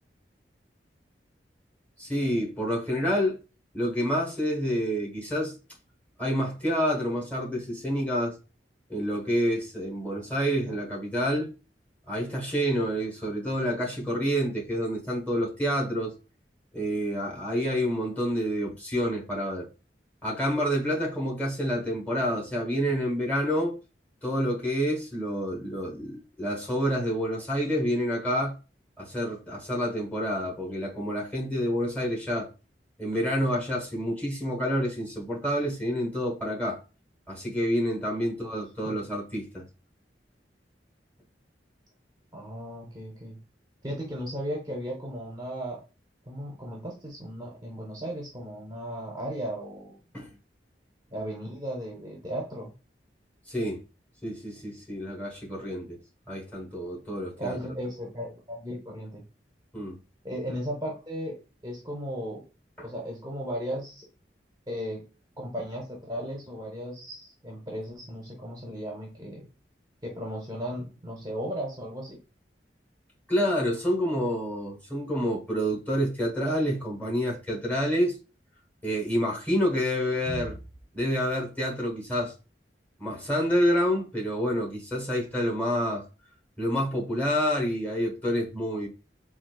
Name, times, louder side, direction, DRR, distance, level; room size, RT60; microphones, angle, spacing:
voice 1, 2.0-3.4 3.7-5.5 6.2-8.3 8.9-11.5 12.1-16.1 16.7-19.7 20.2-23.8 24.2-28.6 29.0-32.5 33.0-36.8 37.3-39.7 50.1-50.3 53.5-53.8 54.2-56.0 56.3-57.6 59.7-60.0 62.8-62.9 73.3-78.2 78.8-80.7 80.9-82.3 83.0-86.0 86.6-88.9, equal, 10° left, 1.0 m, -28 dB
voice 2, 42.3-43.4 43.8-45.8 46.3-50.0 51.1-52.7 57.4-59.2 60.2-61.4 61.6-62.5 62.8-64.1 64.7-65.0 65.4-69.4 70.0-72.2, equal, 20° right, 0.6 m, -36 dB
3.8 x 2.4 x 2.2 m
head